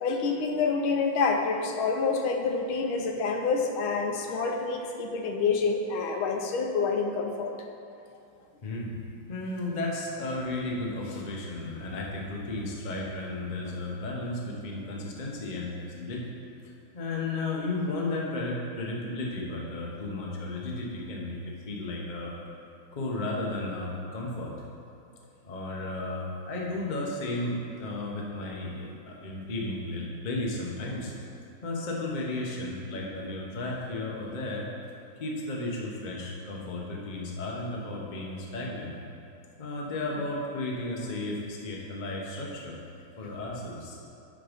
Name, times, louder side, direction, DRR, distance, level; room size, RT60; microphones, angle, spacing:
voice 1, 0.0-7.5, left 4 dB, 85° left, 3 dB, 1.6 m, -27 dB
voice 2, 8.6-16.3 16.6-21.4 21.6-22.4 22.9-24.5 25.4-31.1 31.6-34.7 35.2-38.9 39.6-42.8 43.2-44.0, left 2 dB, 35° left, -2 dB, 0.7 m, -34 dB
10.0 x 3.8 x 5.1 m, 2.7 s
omnidirectional pair, 2.2 m